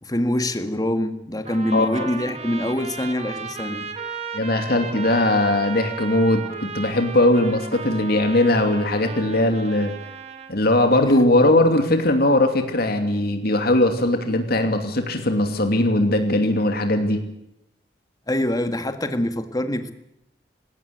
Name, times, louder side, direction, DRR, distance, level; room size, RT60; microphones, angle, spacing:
voice 1, 0.0-3.9 18.3-19.9, left 1 dB, 20° left, 9 dB, 1.8 m, -25 dB
Trumpet, 1.4-10.5, right 5 dB, 40° right, 2.2 m, -35 dB
voice 2, 1.7-2.1 4.3-9.9 10.5-17.2, left 1 dB, 60° left, 6 dB, 2.8 m, -20 dB
19.5 x 17.5 x 8.2 m, 0.83 s
head